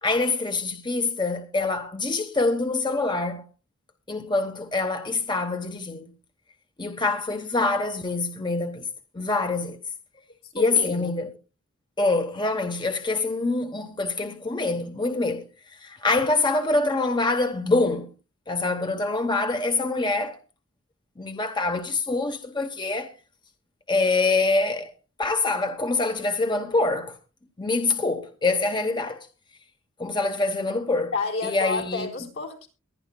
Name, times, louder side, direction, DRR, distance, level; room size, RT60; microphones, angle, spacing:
voice 1, 0.0-3.4 4.1-6.1 6.8-8.9 9.1-9.8 10.5-11.3 12.0-15.5 15.7-18.1 18.5-20.4 21.2-23.1 23.9-24.9 25.2-27.2 27.6-29.3 30.0-31.1 31.4-32.1, left 3 dB, 20° left, 0.9 m, -25 dB
voice 2, 10.4-11.2 31.1-32.7, left 3 dB, 70° left, 4.1 m, -30 dB
23.0 x 10.5 x 2.2 m
head